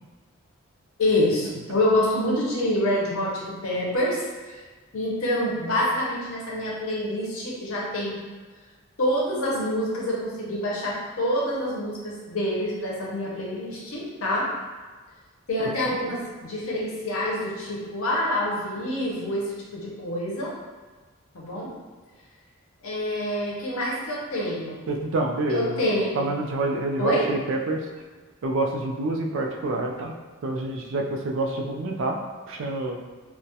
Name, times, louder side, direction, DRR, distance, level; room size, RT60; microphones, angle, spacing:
voice 1, 1.0-4.6 4.9-8.2 9.0-14.5 15.5-20.5 21.3-21.7 22.8-24.8 25.5-26.3 27.0-27.3, left 1 dB, 85° left, -4 dB, 0.7 m, -26 dB
voice 2, 24.9-25.8 26.2-27.9 28.4-30.1 30.4-32.2 32.5-33.0, right 2 dB, 60° right, 2 dB, 0.3 m, -27 dB
2.3 x 2.1 x 2.7 m, 1.4 s
head